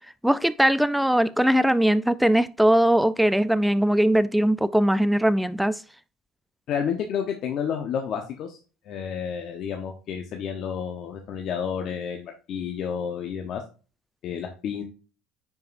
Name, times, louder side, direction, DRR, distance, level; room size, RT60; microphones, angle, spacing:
voice 1, 0.2-5.8, right 1 dB, ahead, 0.5 m, -20 dB
voice 2, 6.7-8.6 8.8-13.6 14.2-14.8, left 7 dB, 55° left, 1.1 m, -30 dB
9.5 x 5.2 x 2.6 m
supercardioid pair, 110°, 0 cm